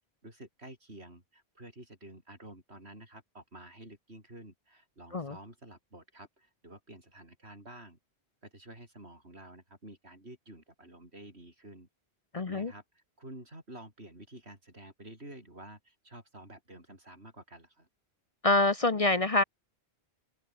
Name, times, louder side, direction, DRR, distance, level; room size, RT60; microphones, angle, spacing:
voice 1, 0.0-8.0 8.4-11.9 12.3-17.9, right 1 dB, 75° right, 7.2 m, -50 dB
voice 2, 12.3-12.7 18.4-19.4, left 2 dB, 35° left, 0.9 m, -26 dB
omnidirectional pair, 1.1 m